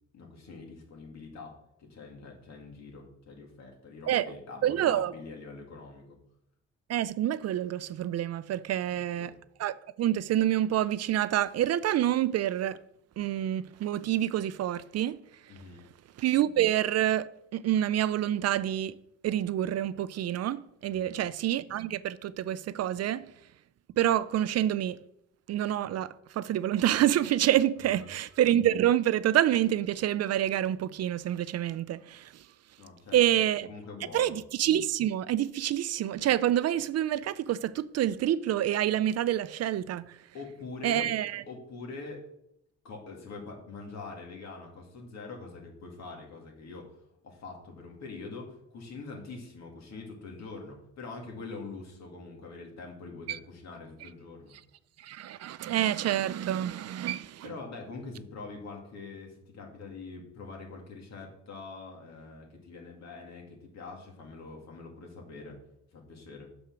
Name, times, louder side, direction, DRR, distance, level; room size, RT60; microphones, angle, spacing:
voice 1, 0.1-6.2 8.9-9.3 15.5-15.8 20.9-21.2 27.9-28.1 32.8-33.4 33.7-34.4 40.3-41.1 41.5-42.3 42.8-47.0 47.2-54.6 57.4-65.6 65.9-66.5, left 3 dB, 60° left, 2.3 m, -44 dB
voice 2, 4.6-5.1 6.9-9.3 9.6-12.8 13.2-15.2 16.2-19.0 19.2-23.3 24.0-25.0 25.5-32.4 33.1-33.7 34.1-40.2 40.8-41.4 53.3-53.4 55.0-57.5, right 12 dB, 55° right, 0.4 m, -27 dB
6.4 x 5.6 x 6.0 m
cardioid pair, 90°, 30 cm